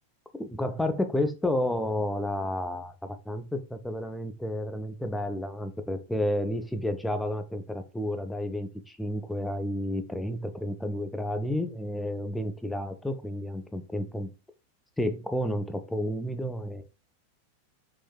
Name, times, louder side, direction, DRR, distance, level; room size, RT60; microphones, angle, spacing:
voice 1, 0.4-14.3 15.0-16.8, left 1 dB, 5° left, 7 dB, 0.3 m, -31 dB
3.7 x 2.5 x 2.2 m, 0.31 s
figure-of-eight pair, 90°, 0 cm